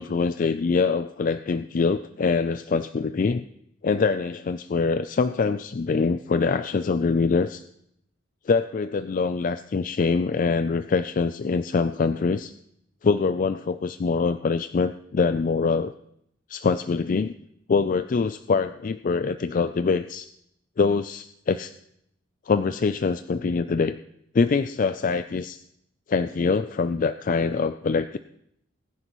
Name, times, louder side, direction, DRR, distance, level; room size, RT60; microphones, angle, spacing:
voice 1, 0.0-3.4 3.8-7.6 8.5-12.5 13.0-15.9 16.5-17.3 17.7-20.3 20.8-21.7 22.5-23.9 24.3-25.6 26.1-28.2, left 4 dB, 45° left, 11 dB, 0.4 m, -24 dB
21.5 x 9.8 x 3.1 m, 0.74 s
head